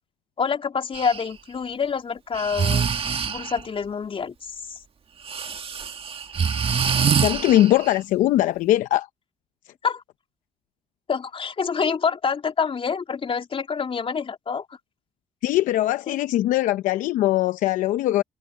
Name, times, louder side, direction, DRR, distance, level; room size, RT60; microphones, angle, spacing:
voice 1, 0.4-3.0 3.3-4.8 9.8-10.0 11.1-14.7 16.1-16.2, left 6 dB, 45° left, 3.7 m, -27 dB
Breathing, 0.9-1.2 2.3-3.6 5.3-8.0, right 6 dB, 45° right, 1.8 m, -25 dB
voice 2, 7.2-9.1 15.4-18.2, left 14 dB, 80° left, 0.8 m, -21 dB
supercardioid pair, 65°, 13 cm